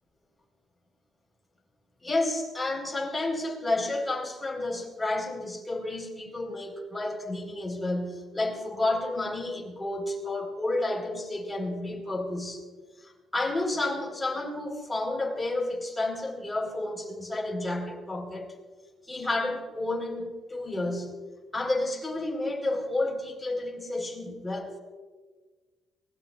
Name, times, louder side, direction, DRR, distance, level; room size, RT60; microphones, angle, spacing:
voice 1, 2.0-12.6 13.0-18.5 19.1-21.2 21.5-24.8, left 2 dB, 10° left, -1 dB, 4.5 m, -31 dB
23.5 x 18.5 x 2.5 m, 1.4 s
cardioid pair, 90°, 0 cm